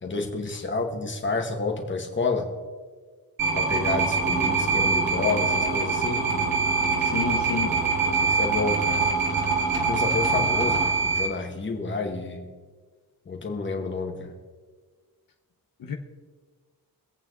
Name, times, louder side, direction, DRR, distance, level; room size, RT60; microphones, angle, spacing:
voice 1, 0.0-2.5 3.5-6.3 8.2-9.0 9.7-12.5 13.3-14.3, left 4 dB, 30° left, 3 dB, 1.9 m, -29 dB
sound 1, 3.4-11.3, right 4 dB, 70° right, 3.1 m, -24 dB
voice 2, 7.0-7.8 15.8-15.9, left 7 dB, 65° left, 4 dB, 1.3 m, -31 dB
25.0 x 8.6 x 4.0 m, 1.4 s
wide cardioid pair, 170°, 36 cm